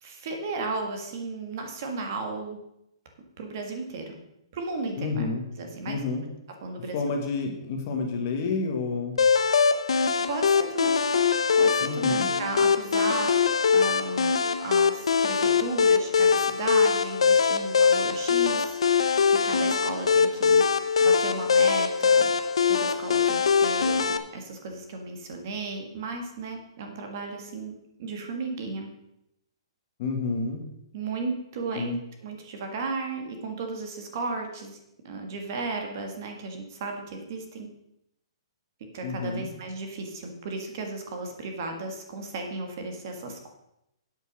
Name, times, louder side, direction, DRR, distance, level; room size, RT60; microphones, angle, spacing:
voice 1, 0.0-2.6 3.4-4.2 4.5-5.3 5.6-6.0 6.6-7.0 10.3-11.0 11.5-13.3 13.7-20.6 21.0-22.3 22.7-27.7 28.0-28.9 30.9-34.8 35.0-37.7 38.9-43.5, right 3 dB, 35° right, 3 dB, 1.7 m, -35 dB
voice 2, 5.0-5.5 5.9-6.2 6.9-9.2 11.8-12.3 30.0-30.6 31.7-32.0 39.0-39.5, left 4 dB, 30° left, 3 dB, 1.5 m, -29 dB
sound 1, 9.2-24.2, left 6 dB, 85° left, 0.9 m, -22 dB
8.2 x 8.1 x 6.2 m, 0.83 s
hypercardioid pair, 175°, 3 cm